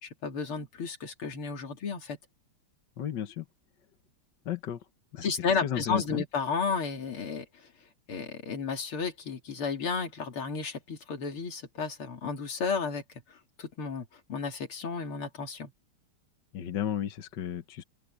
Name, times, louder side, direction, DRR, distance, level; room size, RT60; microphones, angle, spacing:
voice 1, 0.0-2.2 5.2-7.5 8.1-13.0 13.3-15.7, left 5 dB, 75° left, 3.4 m, -33 dB
voice 2, 3.0-3.5 4.5-4.8 5.1-5.3 5.6-6.2 16.5-17.8, left 10 dB, 55° left, 1.7 m, -33 dB
open air
omnidirectional pair, 2.4 m